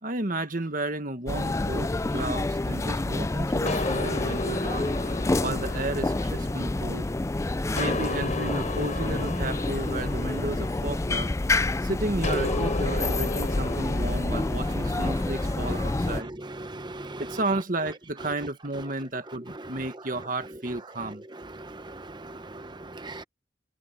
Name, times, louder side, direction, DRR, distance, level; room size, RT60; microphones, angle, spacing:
voice 1, 0.0-4.9 5.4-7.1 7.7-11.3 11.8-16.3 17.2-21.2, right 2 dB, 45° right, 1.6 m, -33 dB
sound 1, 1.3-16.2, left 2 dB, 15° left, 0.3 m, -28 dB
sound 2, 3.7-7.2 7.8-11.5 12.2-14.9, left 2 dB, 40° left, 6.4 m, -34 dB
voice 2, 16.0-17.2 19.5-19.7 21.5-23.2, right 2 dB, 25° right, 0.8 m, -40 dB
head